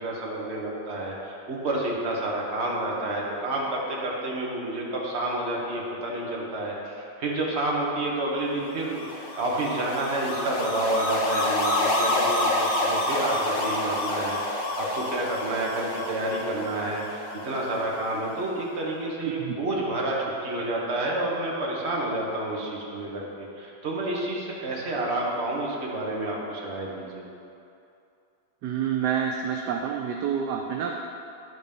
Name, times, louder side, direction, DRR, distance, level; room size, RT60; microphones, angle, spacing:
voice 1, 0.0-27.2, right 1 dB, 40° right, -3 dB, 1.4 m, -29 dB
sound 1, 8.8-18.1, left 1 dB, 75° left, 1.7 m, -28 dB
voice 2, 19.2-19.5 28.6-30.9, right 8 dB, 75° right, 2 dB, 1.1 m, -28 dB
11.0 x 4.1 x 5.2 m, 2.6 s
omnidirectional pair, 2.0 m